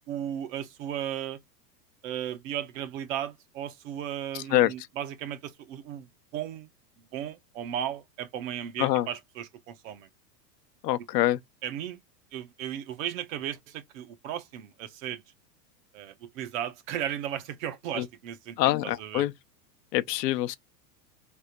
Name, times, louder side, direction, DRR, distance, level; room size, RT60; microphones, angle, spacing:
voice 1, 0.1-1.4 2.0-6.1 6.3-6.7 7.1-10.1 11.6-12.0 12.3-15.2 15.9-18.6 18.8-19.2, right 10 dB, 55° right, 0.9 m, -35 dB
voice 2, 4.3-4.7 8.8-9.1 10.8-11.4 17.9-18.1 18.6-19.3 19.9-20.6, left 15 dB, 75° left, 0.7 m, -25 dB
3.4 x 2.5 x 4.4 m
supercardioid pair, 140°, 49 cm